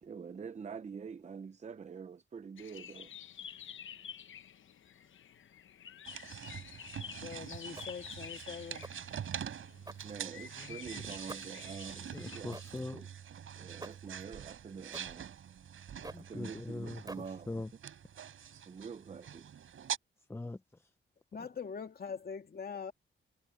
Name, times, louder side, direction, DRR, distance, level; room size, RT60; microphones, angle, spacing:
voice 1, 0.0-3.1 10.0-12.6 13.5-15.3 16.1-17.5 18.7-19.6, right 6 dB, 35° right, 0.6 m, -46 dB
sound 1, 2.6-12.4, left 9 dB, 70° left, 0.9 m, -50 dB
sound 2, 6.0-20.0, right 9 dB, 90° right, 4.2 m, -45 dB
voice 2, 7.2-8.9 21.3-22.9, left 6 dB, 50° left, 2.0 m, -43 dB
sound 3, 7.8-8.1 8.8-9.1 9.8-10.5 11.3-11.7 12.5-12.9 13.8-14.1 14.9-15.3 16.0-16.4 17.1-17.5, right 2 dB, 20° right, 4.6 m, -49 dB
voice 3, 12.1-13.1 16.0-17.7 20.3-20.9 21.4-21.5, left 2 dB, 10° left, 0.6 m, -42 dB
wide cardioid pair, 130°, 21 cm